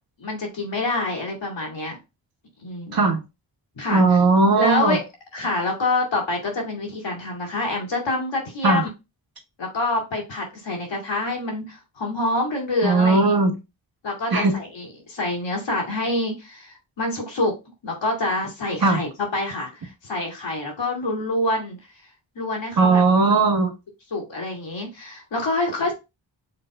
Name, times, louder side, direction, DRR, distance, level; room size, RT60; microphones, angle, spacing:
voice 1, 0.2-2.0 2.6-3.1 3.7-4.0 4.6-5.0 5.3-8.9 9.6-13.3 14.0-17.5 17.8-21.8 22.4-23.0 24.1-25.9, left 2 dB, 75° left, -1 dB, 2.4 m, -26 dB
voice 2, 3.9-5.0 8.6-8.8 12.8-13.5 14.3-14.6 18.8-19.0 22.8-23.7, right 3 dB, 50° right, 3 dB, 1.5 m, -18 dB
5.7 x 3.4 x 2.4 m, 0.25 s
cardioid pair, 55°, 45 cm